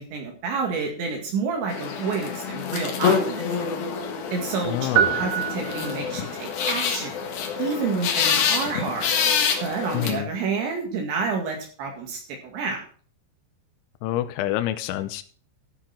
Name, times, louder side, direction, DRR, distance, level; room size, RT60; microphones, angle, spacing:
voice 1, 0.0-3.7 4.3-7.2 7.6-9.2 9.6-12.8, right 5 dB, 70° right, 1 dB, 4.1 m, -29 dB
sound 1, 1.7-10.1, left 6 dB, 60° left, 3.0 m, -26 dB
voice 2, 4.7-5.2 9.9-10.3 14.0-15.2, left 13 dB, 80° left, 10 dB, 3.0 m, -27 dB
sound 2, 5.0-6.4, right 10 dB, 85° right, 2.4 m, -25 dB
13.5 x 6.2 x 5.8 m, 0.43 s
omnidirectional pair, 5.6 m